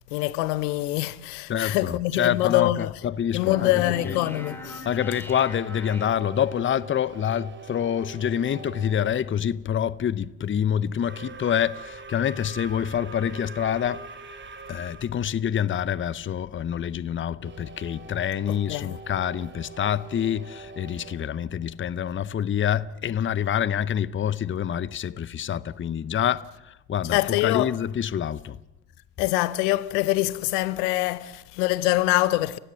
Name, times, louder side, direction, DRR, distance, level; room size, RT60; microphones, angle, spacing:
voice 1, 0.1-2.9 3.3-4.9 18.5-19.0 27.1-27.7 29.2-32.6, left 17 dB, 80° left, 0.9 m, -24 dB
voice 2, 1.5-4.2 4.8-14.0 14.7-28.6, left 9 dB, 25° left, 0.7 m, -27 dB
sound 1, 3.4-6.7, left 1 dB, 5° left, 3.2 m, -40 dB
sound 2, 5.4-9.3 10.9-15.1 17.4-22.3, right 4 dB, 25° right, 3.1 m, -43 dB
30.0 x 16.0 x 7.5 m
supercardioid pair, 85°, 46 cm